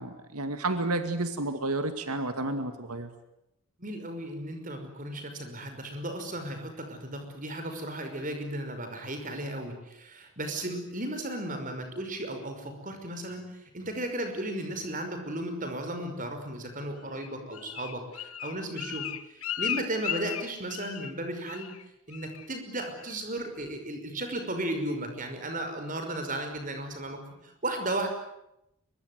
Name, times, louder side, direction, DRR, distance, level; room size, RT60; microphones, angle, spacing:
voice 1, 0.0-3.1, right 2 dB, 90° right, 8 dB, 2.2 m, -31 dB
voice 2, 3.8-21.7 22.1-28.1, right 1 dB, 35° right, 6 dB, 5.6 m, -35 dB
Bird, 17.1-21.2 21.5-21.8 22.1-22.5 22.8-23.2 23.6-23.7, left 11 dB, 75° left, 1.4 m, -36 dB
24.0 x 23.5 x 9.5 m, 0.84 s
head